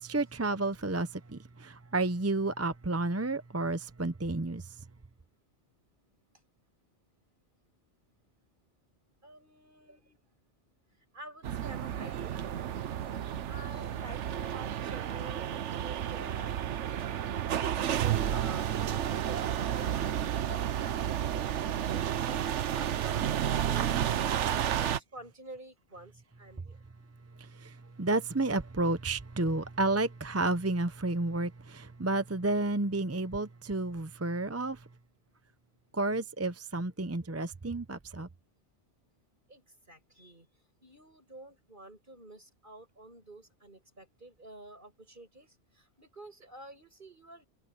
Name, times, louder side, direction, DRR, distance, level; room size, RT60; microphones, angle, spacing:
voice 1, 0.0-4.7 27.4-34.8 35.9-38.3, right 2 dB, 15° right, 0.6 m, -31 dB
voice 2, 9.2-10.2 11.1-12.5 13.5-16.5 16.8-26.8 39.5-40.5 40.8-47.5, right 1 dB, 45° right, 8.0 m, -50 dB
sound 1, 11.4-25.0, right 10 dB, 85° right, 1.1 m, -31 dB
omnidirectional pair, 1.2 m